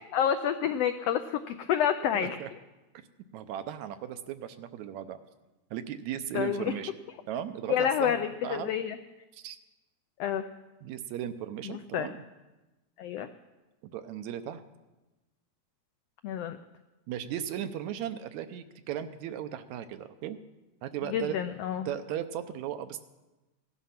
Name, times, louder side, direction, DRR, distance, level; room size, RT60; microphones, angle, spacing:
voice 1, 0.1-2.4 6.3-6.7 7.7-9.0 10.2-10.4 11.6-12.1 13.0-13.3 16.2-16.6 21.1-21.9, left 9 dB, 85° left, 8 dB, 1.4 m, -29 dB
voice 2, 2.1-2.5 3.3-5.2 5.7-6.9 7.3-8.7 9.3-9.6 10.8-12.2 13.8-14.6 17.1-20.4 20.8-21.4 21.9-23.0, right 10 dB, 75° right, 10 dB, 2.0 m, -36 dB
16.5 x 11.5 x 5.8 m, 1.1 s
omnidirectional pair, 3.5 m